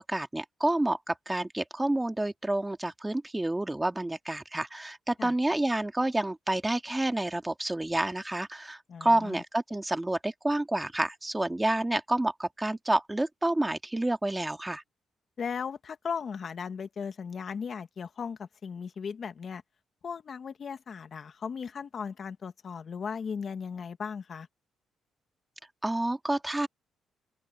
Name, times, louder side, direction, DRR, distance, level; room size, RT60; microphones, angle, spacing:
voice 1, 0.0-14.8 25.8-26.7, right 1 dB, 10° right, 2.0 m, -29 dB
voice 2, 8.9-9.4 15.4-19.6 20.0-24.5, left 6 dB, 50° left, 1.9 m, -37 dB
open air
cardioid pair, 90°, 0 cm